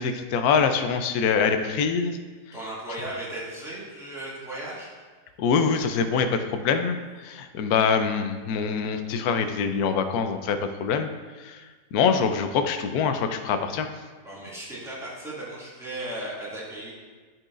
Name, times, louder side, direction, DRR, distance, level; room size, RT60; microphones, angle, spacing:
voice 1, 0.0-2.2 5.4-7.0 7.2-11.1 11.4-11.6 11.9-13.9, left 6 dB, 75° left, 7 dB, 1.1 m, -24 dB
voice 2, 2.5-4.9 14.2-16.9, right 1 dB, ahead, -9 dB, 2.0 m, -36 dB
11.5 x 4.6 x 2.5 m, 1.4 s
omnidirectional pair, 1.7 m